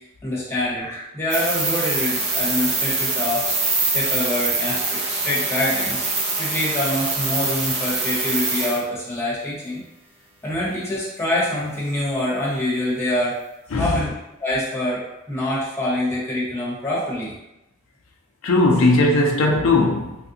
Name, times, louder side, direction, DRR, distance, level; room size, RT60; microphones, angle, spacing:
voice 1, 0.2-3.4 3.9-6.1 6.4-9.8 10.4-13.3 13.8-14.1 14.4-15.0 15.3-17.3, left 1 dB, 15° left, -7 dB, 1.0 m, -25 dB
sound 1, 1.3-8.8, right 3 dB, 30° right, 0.5 m, -24 dB
voice 2, 18.4-20.2, left 2 dB, 80° left, 0 dB, 0.4 m, -18 dB
3.2 x 2.5 x 2.7 m, 0.92 s
head